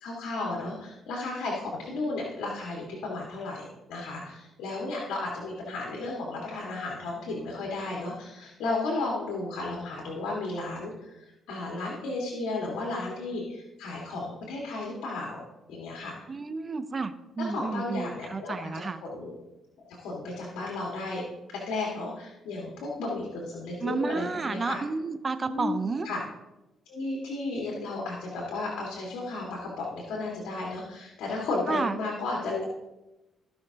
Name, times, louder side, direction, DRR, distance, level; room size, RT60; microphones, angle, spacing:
voice 1, 0.0-15.4 15.7-16.1 17.4-18.7 19.0-19.3 20.0-21.2 21.5-24.8 25.5-26.2 26.9-32.6, left 2 dB, 85° left, -2 dB, 1.9 m, -34 dB
voice 2, 16.3-19.0 23.8-26.1 31.7-32.0, right 4 dB, 35° right, 11 dB, 0.7 m, -31 dB
16.0 x 5.8 x 2.9 m, 0.98 s
cardioid pair, 90°, 0 cm